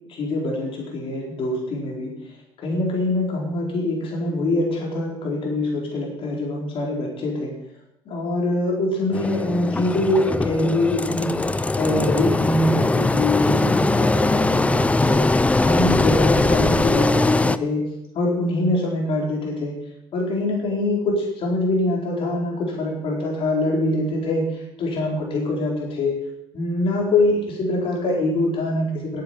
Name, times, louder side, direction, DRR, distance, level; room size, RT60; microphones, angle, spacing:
voice 1, 0.1-7.5 8.0-17.9 18.1-19.8 20.1-26.2 26.5-29.2, left 2 dB, 60° left, -2 dB, 4.8 m, -24 dB
Engine, 9.1-17.6, left 2 dB, 10° left, 0.6 m, -20 dB
9.9 x 8.3 x 8.6 m, 0.84 s
supercardioid pair, 80°, 11 cm